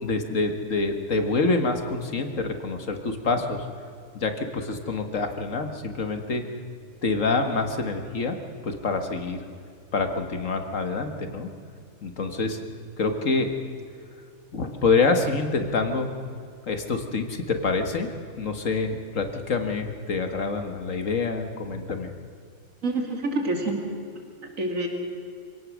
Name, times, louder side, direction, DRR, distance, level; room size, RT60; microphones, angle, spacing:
voice 1, 0.0-3.7 4.1-6.5 7.0-8.4 8.6-9.4 9.9-11.5 12.0-12.6 13.0-13.5 14.5-16.1 16.6-18.1 18.4-22.1, left 3 dB, 65° left, 6 dB, 2.0 m, -26 dB
voice 2, 22.8-23.9 24.6-24.9, right 2 dB, 70° right, 2 dB, 3.0 m, -27 dB
25.5 x 17.5 x 6.4 m, 2.3 s
omnidirectional pair, 1.4 m